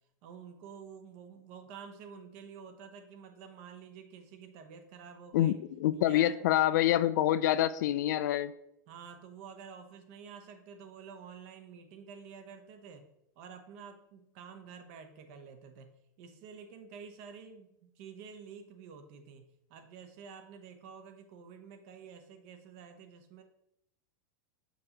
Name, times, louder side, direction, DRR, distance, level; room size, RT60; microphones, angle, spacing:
voice 1, 0.2-5.5 5.9-6.3 6.9-7.0 8.9-13.1 13.4-23.4, right 6 dB, 45° right, 7 dB, 0.8 m, -50 dB
voice 2, 5.3-8.5, left 12 dB, 70° left, 15 dB, 0.4 m, -26 dB
6.5 x 2.9 x 5.0 m, 0.79 s
supercardioid pair, 160°, 10 cm